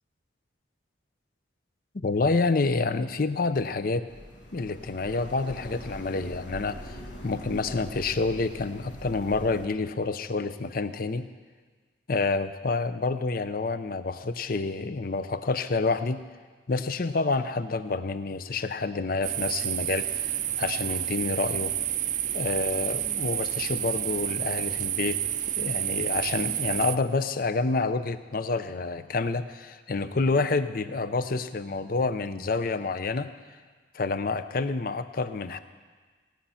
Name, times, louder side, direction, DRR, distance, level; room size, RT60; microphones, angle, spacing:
voice 1, 1.9-4.1 4.5-11.3 12.1-16.2 16.7-21.8 22.3-25.2 25.5-33.3 33.9-35.6, left 3 dB, 50° left, 11 dB, 0.6 m, -28 dB
sound 1, 4.1-9.7, equal, 70° left, 1.5 m, -43 dB
sound 2, 19.2-27.0, right 11 dB, 40° right, 0.5 m, -30 dB
18.5 x 8.9 x 5.7 m, 1.5 s
head